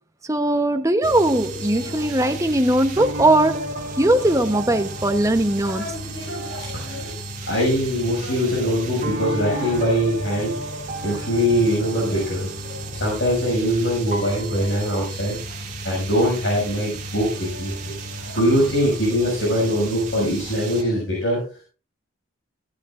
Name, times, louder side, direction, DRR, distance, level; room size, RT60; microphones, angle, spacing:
voice 1, 0.3-3.7 4.0-5.9, right 1 dB, 15° right, 0.9 m, -19 dB
sound 1, 1.0-20.8, right 1 dB, 35° right, 2.0 m, -33 dB
voice 2, 5.6-7.2 7.5-10.5 11.0-15.4 15.8-17.8 18.2-21.4, equal, 60° left, 6.4 m, -22 dB
15.5 x 12.5 x 2.5 m
head